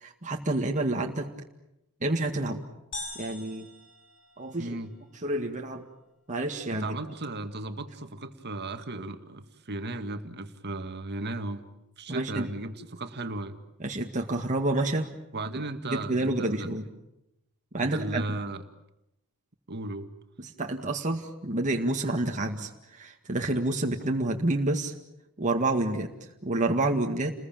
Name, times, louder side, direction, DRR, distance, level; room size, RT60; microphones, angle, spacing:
voice 1, 0.0-1.3 2.0-2.6 3.2-3.7 4.4-4.8 5.2-5.8 6.3-6.9 12.1-12.5 13.8-15.1 15.5-15.6 15.9-16.9 17.7-18.4 20.4-24.9 25.4-26.1 26.4-27.3, right 2 dB, 35° right, 1 dB, 1.9 m, -28 dB
sound 1, 2.9-4.9, left 2 dB, 60° left, 5.6 m, -42 dB
voice 2, 4.6-4.9 6.7-11.6 12.0-13.6 15.3-16.7 17.8-18.6 19.7-20.1, right 2 dB, 50° right, 8 dB, 2.0 m, -35 dB
29.5 x 21.0 x 9.0 m, 0.89 s
head